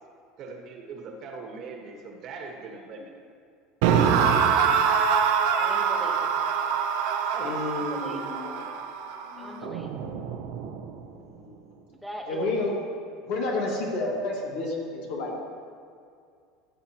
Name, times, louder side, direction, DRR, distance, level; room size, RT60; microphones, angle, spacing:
voice 1, 0.4-3.1 7.3-7.7, right 4 dB, 55° right, 2 dB, 1.5 m, -40 dB
sound 1, 3.8-10.9, right 7 dB, 75° right, 0.8 m, -25 dB
voice 2, 5.6-6.5 7.8-8.7 9.4-10.2 11.9-12.5, equal, ahead, 1 dB, 1.1 m, -41 dB
voice 3, 7.4-8.7 9.2-10.2 11.1-11.6 12.3-12.9 13.3-15.4, left 2 dB, 75° left, -3 dB, 2.2 m, -31 dB
14.0 x 7.1 x 3.0 m, 2.3 s
supercardioid pair, 105°, 0 cm